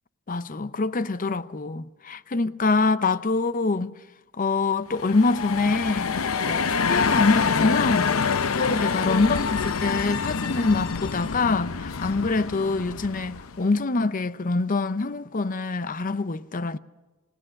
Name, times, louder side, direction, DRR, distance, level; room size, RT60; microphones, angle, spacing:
voice 1, 0.3-3.9 4.4-16.8, left 3 dB, 40° left, 0.6 m, -25 dB
sound 1, 4.9-13.6, left 5 dB, 75° left, 0.7 m, -26 dB
sound 2, 5.4-10.5, equal, 5° left, 7.5 m, -50 dB
28.0 x 18.5 x 6.5 m
head